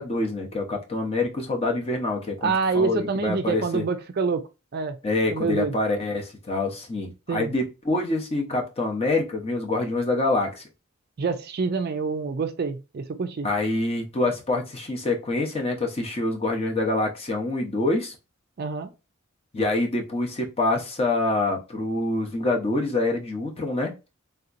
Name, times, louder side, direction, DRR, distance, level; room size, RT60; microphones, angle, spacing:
voice 1, 0.0-3.8 5.0-10.6 13.4-18.2 19.5-23.9, left 2 dB, 30° left, 0.7 m, -26 dB
voice 2, 2.4-4.4 4.7-5.0 5.3-5.7 7.3-7.5 11.2-13.5 18.6-18.9, right 4 dB, 45° right, 0.4 m, -26 dB
3.4 x 2.8 x 2.5 m
head